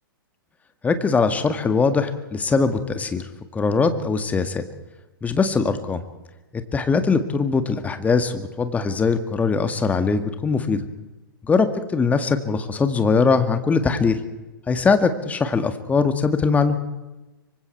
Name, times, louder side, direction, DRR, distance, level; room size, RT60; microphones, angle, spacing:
voice 1, 0.8-3.3 3.5-4.6 5.2-6.0 6.5-10.8 11.4-14.2 14.7-16.8, left 4 dB, 10° left, 9 dB, 1.9 m, -21 dB
25.5 x 24.5 x 4.6 m, 1.1 s
figure-of-eight pair, 110°, 12 cm